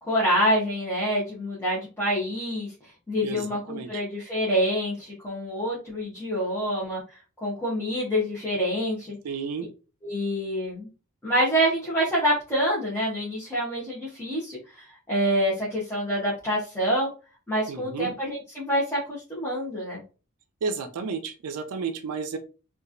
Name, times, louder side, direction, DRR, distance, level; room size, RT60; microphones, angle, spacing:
voice 1, 0.0-9.2 10.0-10.9 11.2-17.1 17.5-20.0, equal, 10° left, -8 dB, 0.8 m, -27 dB
voice 2, 3.2-4.0 9.2-9.7 17.7-18.1 20.6-22.4, right 5 dB, 85° right, 7 dB, 0.4 m, -32 dB
2.9 x 2.4 x 2.5 m, 0.33 s
head